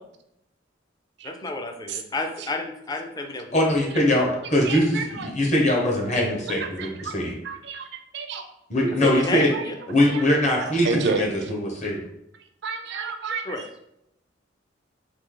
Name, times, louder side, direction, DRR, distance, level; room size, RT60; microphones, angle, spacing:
voice 1, 1.3-3.6 9.0-9.7 13.5-13.6, left 2 dB, 20° left, 4 dB, 0.4 m, -30 dB
voice 2, 3.5-7.3 8.7-9.5 9.9-12.0, left 1 dB, 40° left, -1 dB, 0.9 m, -22 dB
voice 3, 4.4-5.3 6.5-7.1 7.4-8.5 9.0-9.2 9.5-9.6 10.1-10.2 10.6-11.5 12.6-13.7, right 5 dB, 65° right, 5 dB, 0.4 m, -31 dB
3.2 x 2.7 x 3.7 m, 0.81 s
head